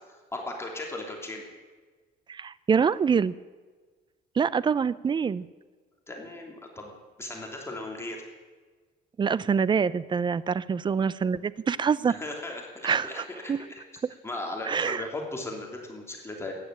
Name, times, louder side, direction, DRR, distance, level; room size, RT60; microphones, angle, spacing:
voice 1, 0.3-1.4 6.1-8.2 12.1-13.8 14.2-16.5, left 2 dB, 15° left, 0 dB, 2.9 m, -37 dB
voice 2, 2.3-3.3 4.4-5.5 9.2-12.1 12.8-13.6 14.6-15.0, right 6 dB, 30° right, 19 dB, 0.5 m, -25 dB
14.5 x 10.5 x 8.9 m, 1.4 s
cardioid pair, 110°, 17 cm